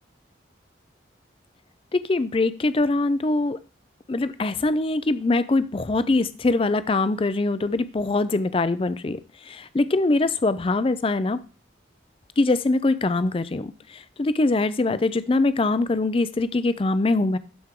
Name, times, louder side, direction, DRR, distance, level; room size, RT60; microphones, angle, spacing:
voice 1, 1.9-3.6 4.1-11.4 12.4-17.4, left 2 dB, 30° left, 14 dB, 0.4 m, -23 dB
12.5 x 4.6 x 3.6 m, 0.35 s
head